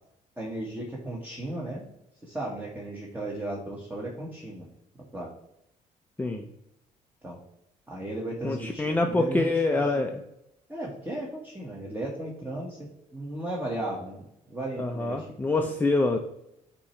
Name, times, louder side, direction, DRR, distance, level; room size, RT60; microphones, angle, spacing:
voice 1, 0.4-1.9 2.2-4.7 5.1-5.3 7.2-7.4 7.9-10.1 10.7-15.3, right 1 dB, 10° right, -3 dB, 1.4 m, -35 dB
voice 2, 8.4-10.2 14.8-16.2, left 2 dB, 10° left, 3 dB, 0.6 m, -26 dB
8.4 x 3.0 x 4.4 m, 0.80 s
cardioid pair, 105°, 15 cm